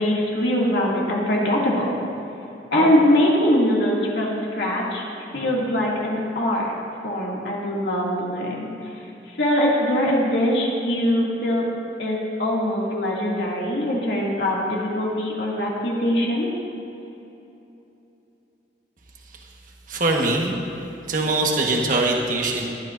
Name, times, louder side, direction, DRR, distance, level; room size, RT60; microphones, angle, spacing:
voice 1, 0.0-2.0 2.7-5.0 5.3-6.7 7.0-8.7 9.4-11.7 12.0-16.5, left 1 dB, 75° left, -4 dB, 2.3 m, -22 dB
voice 2, 19.9-20.5 21.1-22.7, right 2 dB, 50° right, 0 dB, 1.3 m, -22 dB
19.0 x 12.0 x 2.6 m, 2.9 s
head